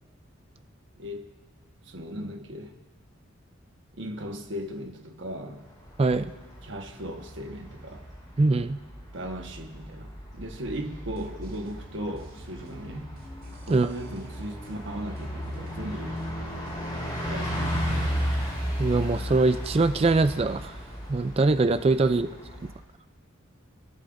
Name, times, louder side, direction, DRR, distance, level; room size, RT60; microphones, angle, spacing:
voice 1, 1.0-1.3 1.8-2.7 4.0-5.7 6.6-8.0 9.1-13.1 13.7-16.2 17.3-18.2 22.1-22.4, equal, 60° right, 3 dB, 1.3 m, -37 dB
Bus, 5.7-22.8, equal, 20° left, 4.7 m, -35 dB
voice 2, 6.0-6.3 8.4-8.8 13.7-13.9 18.8-20.8 21.1-22.3, right 3 dB, 30° right, 11 dB, 0.3 m, -22 dB
sound 1, 10.8-18.0, right 1 dB, 90° right, 2.9 m, -51 dB
29.5 x 11.0 x 2.6 m, 1.2 s
head